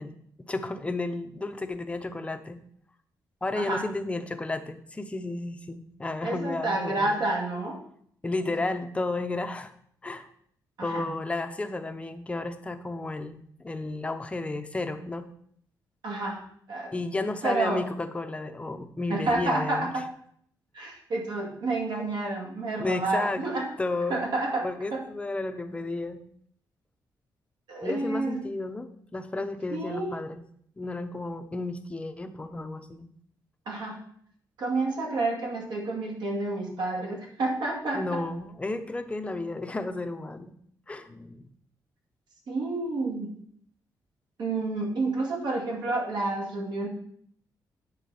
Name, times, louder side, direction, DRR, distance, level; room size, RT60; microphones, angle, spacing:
voice 1, 0.0-2.6 3.4-7.2 8.2-9.7 10.0-10.3 10.8-15.3 16.9-19.9 22.8-23.4 23.8-24.2 24.6-26.3 27.8-30.4 30.8-33.1 37.9-40.5 40.9-41.4, left 2 dB, 15° left, 7 dB, 0.7 m, -32 dB
voice 2, 6.2-7.8 10.8-11.1 16.0-16.4 16.7-16.9 17.4-17.8 19.1-20.1 20.7-23.7 24.1-25.0 27.7-28.4 29.7-30.1 33.7-34.0 34.6-38.2 42.5-43.3 44.4-46.9, right 2 dB, 75° right, -1 dB, 2.5 m, -29 dB
9.3 x 4.0 x 6.8 m, 0.65 s
cardioid pair, 135°, 7 cm